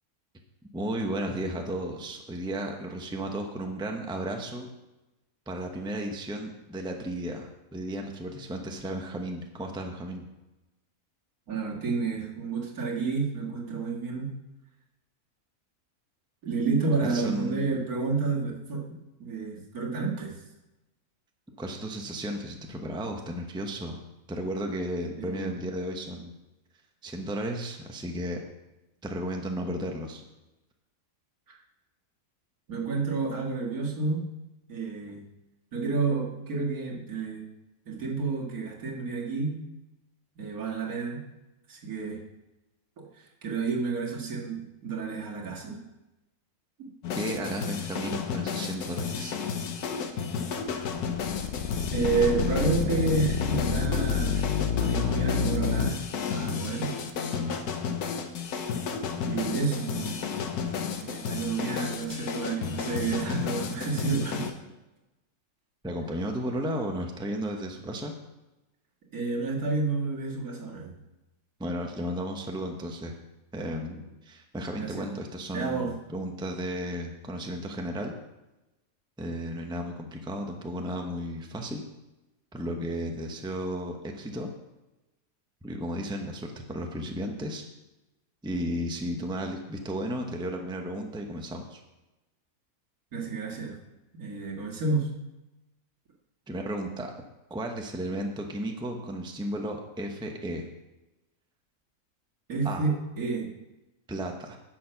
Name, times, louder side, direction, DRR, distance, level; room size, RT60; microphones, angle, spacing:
voice 1, 0.7-4.7 5.5-10.2 17.0-17.8 21.6-24.0 24.3-26.3 27.0-28.4 29.0-30.2 47.1-49.4 65.8-68.1 71.6-73.2 73.5-78.1 79.2-81.8 82.5-84.5 85.6-87.6 88.4-91.8 96.5-97.1 97.5-100.7 102.6-102.9 104.1-104.6, equal, 5° right, 3 dB, 0.8 m, -34 dB
voice 2, 11.5-14.3 16.4-20.3 25.2-25.5 31.5-31.6 32.7-34.2 34.7-35.2 35.7-37.4 37.9-39.5 40.4-41.2 41.7-42.2 43.0-43.1 43.4-45.8 46.8-46.9 51.9-54.5 54.8-56.0 56.3-56.9 59.3-60.3 60.8-64.5 69.1-70.9 74.8-75.1 75.5-75.9 93.1-93.8 94.1-95.1 102.5-103.5, right 4 dB, 70° right, -2 dB, 2.4 m, -30 dB
sound 1, 47.0-64.5, left 6 dB, 85° left, 1.5 m, -32 dB
sound 2, 51.1-55.9, left 6 dB, 55° left, 0.9 m, -28 dB
10.5 x 7.1 x 5.8 m, 1.0 s
omnidirectional pair, 1.6 m